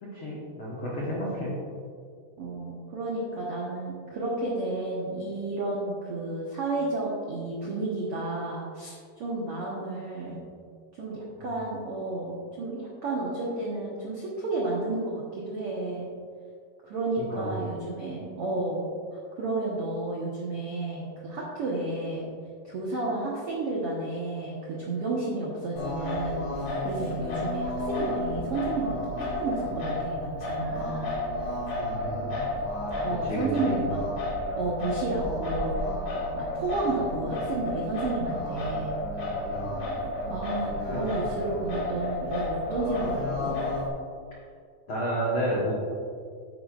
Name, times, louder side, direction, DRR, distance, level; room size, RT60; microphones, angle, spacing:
voice 1, 0.0-1.5 17.2-17.5 31.8-32.3 33.1-33.7 39.5-39.8 44.9-45.7, equal, 75° left, -5 dB, 1.2 m, -31 dB
voice 2, 2.4-10.4 10.9-16.1 16.8-18.8 19.1-22.3 22.6-26.4 26.8-31.1 33.0-34.0 34.6-35.8 36.3-39.0 40.3-43.6, right 2 dB, 75° right, -4 dB, 1.3 m, -32 dB
Singing, 25.8-43.9, left 1 dB, 50° left, 3.1 m, -31 dB
11.0 x 9.3 x 2.5 m, 2.2 s
omnidirectional pair, 4.6 m